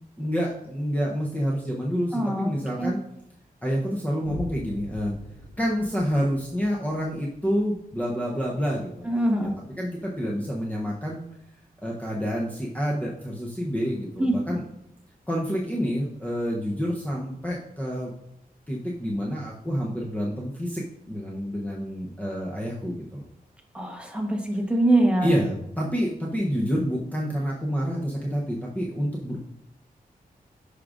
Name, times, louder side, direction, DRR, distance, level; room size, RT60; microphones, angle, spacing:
voice 1, 0.2-3.0 3.6-5.1 5.6-9.0 9.4-9.5 9.8-11.2 11.8-14.6 15.3-18.1 18.7-23.2 25.2-29.4, equal, 10° left, -3 dB, 0.8 m, -28 dB
voice 2, 2.1-2.5 2.8-2.9 9.0-9.5 14.2-14.3 23.7-25.3, right 1 dB, 5° right, 1 dB, 1.1 m, -23 dB
Boom, 4.2-11.2 11.7-11.8, left 1 dB, 60° left, 1.4 m, -44 dB
11.0 x 4.9 x 2.5 m, 0.80 s
wide cardioid pair, 150°, 15 cm